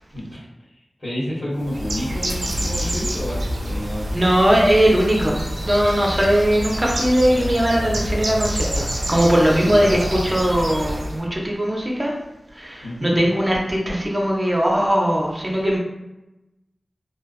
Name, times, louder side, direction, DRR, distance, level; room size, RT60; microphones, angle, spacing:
voice 1, 0.1-4.3 9.6-10.0 12.8-13.2, equal, 75° left, -11 dB, 1.3 m, -30 dB
Bird, 1.6-11.2, equal, 70° right, 0.4 m, -27 dB
voice 2, 4.1-5.4 5.6-12.1 12.5-15.8, equal, 25° right, -2 dB, 0.7 m, -19 dB
2.4 x 2.4 x 2.3 m, 0.98 s
cardioid pair, 45°, 0 cm